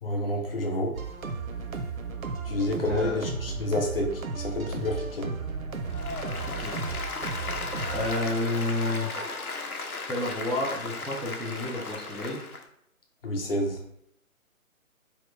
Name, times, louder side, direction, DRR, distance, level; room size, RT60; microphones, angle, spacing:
voice 1, 0.0-0.9 2.5-5.3 13.2-13.8, left 1 dB, 40° left, 1 dB, 0.7 m, -29 dB
sound 1, 0.9-8.1, right 4 dB, 70° right, 0.6 m, -34 dB
voice 2, 2.9-3.2 6.4-6.7 7.9-9.2 10.1-12.4, left 2 dB, ahead, -7 dB, 0.3 m, -30 dB
Applause, 5.9-12.6, left 3 dB, 85° left, 0.7 m, -35 dB
3.9 x 2.9 x 3.0 m, 0.76 s
figure-of-eight pair, 145°, 43 cm